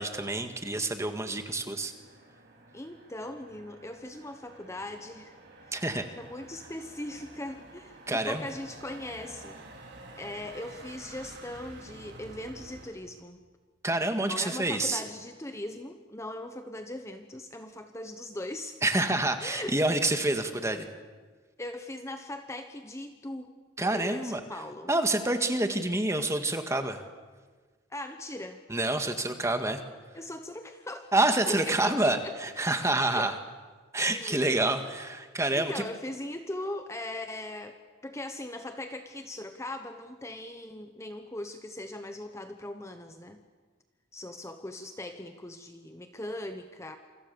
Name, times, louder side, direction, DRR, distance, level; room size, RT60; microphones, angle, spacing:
voice 1, 0.0-1.9 5.7-6.1 8.1-8.5 13.8-15.0 18.8-20.9 23.8-24.4 24.9-27.0 28.7-29.8 31.1-33.4 33.9-35.8, right 2 dB, 15° right, 7 dB, 1.8 m, -27 dB
Motor vehicle (road), 1.6-12.9, right 2 dB, 60° right, 5.4 m, -50 dB
voice 2, 2.7-5.3 5.6-5.8 6.2-9.6 10.2-13.4 14.2-18.8 19.4-19.8 21.6-23.5 23.8-24.9 27.9-28.6 30.1-31.1 31.5-32.3 32.6-33.3 34.0-34.5 35.5-43.4 44.1-47.0, left 1 dB, 15° left, 7 dB, 1.1 m, -40 dB
28.0 x 25.0 x 7.0 m, 1.4 s
head